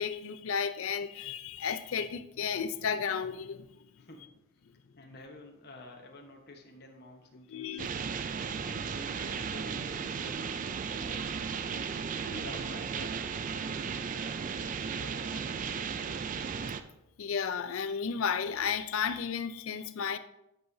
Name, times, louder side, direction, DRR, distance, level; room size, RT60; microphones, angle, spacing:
voice 1, 0.0-3.7 7.5-7.9 17.2-20.2, left 6 dB, 70° left, 0.4 m, -33 dB
voice 2, 4.0-4.4 5.0-7.8 8.4-16.0, left 1 dB, 50° left, 1.1 m, -50 dB
sound 1, 7.8-16.8, right 6 dB, 35° right, 0.3 m, -35 dB
10.5 x 5.4 x 2.7 m
head